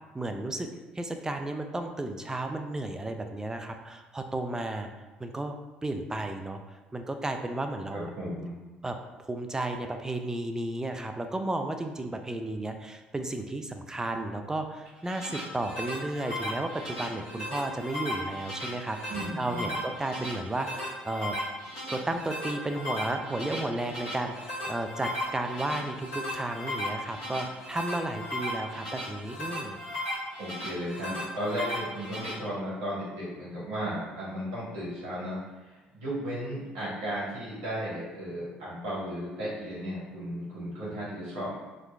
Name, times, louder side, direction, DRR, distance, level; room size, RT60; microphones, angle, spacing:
voice 1, 0.1-4.9 5.2-5.6 5.8-6.6 6.9-8.1 8.8-21.4 21.9-29.8, right 2 dB, 15° right, 6 dB, 0.3 m, -33 dB
voice 2, 7.9-8.6 19.1-19.8 30.4-41.6, equal, 65° right, -8 dB, 1.3 m, -35 dB
sound 1, 14.9-32.3, left 1 dB, 65° left, 1.3 m, -36 dB
4.2 x 2.2 x 2.3 m, 1.2 s
figure-of-eight pair, 50°, 5 cm